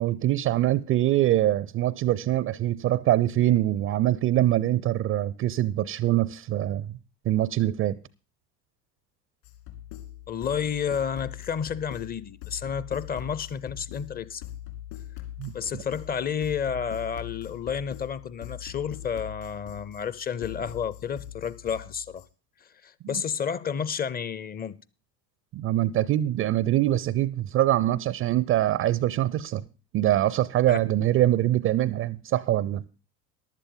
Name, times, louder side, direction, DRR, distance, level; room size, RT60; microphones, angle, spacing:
voice 1, 0.0-6.9 7.2-8.0 15.4-15.8 23.0-23.2 25.5-29.6 29.9-32.8, right 13 dB, 30° right, 0.5 m, -24 dB
sound 1, 9.4-22.3, left 12 dB, 55° left, 2.7 m, -42 dB
voice 2, 10.3-14.4 15.5-22.2 22.8-24.8 30.7-30.8, left 7 dB, 20° left, 0.6 m, -31 dB
15.0 x 11.5 x 3.9 m
figure-of-eight pair, 70°, 47 cm